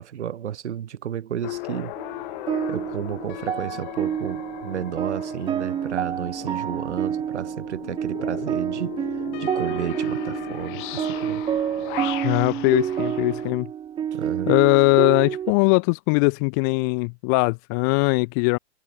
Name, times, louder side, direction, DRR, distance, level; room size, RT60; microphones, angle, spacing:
voice 1, 0.0-2.0 2.7-9.1 9.4-11.4 14.1-14.5, right 10 dB, 75° right, 2.5 m, -32 dB
sound 1, 1.4-13.5, left 21 dB, 45° left, 2.2 m, -37 dB
sound 2, 2.0-15.5, right 9 dB, 15° right, 0.8 m, -28 dB
voice 2, 12.2-13.7 14.5-18.6, left 35 dB, 20° left, 0.3 m, -20 dB
hypercardioid pair, 135°, 35 cm